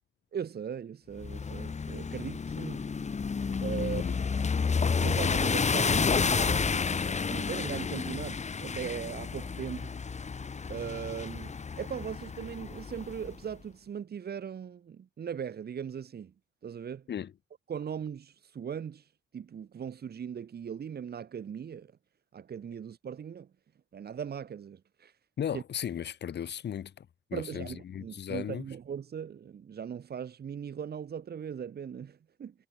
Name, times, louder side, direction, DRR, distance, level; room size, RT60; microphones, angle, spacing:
voice 1, 0.3-2.8 3.6-4.0 5.0-9.9 10.7-16.3 16.6-17.0 17.7-21.9 22.3-23.5 23.9-25.1 25.5-25.6 27.3-32.5, right 8 dB, 55° right, 6.5 m, -39 dB
sound 1, 1.2-13.3, left 5 dB, 35° left, 4.4 m, -31 dB
voice 2, 3.8-4.2 17.1-17.3 25.4-28.6, left 9 dB, 60° left, 4.9 m, -36 dB
cardioid pair, 90°, 20 cm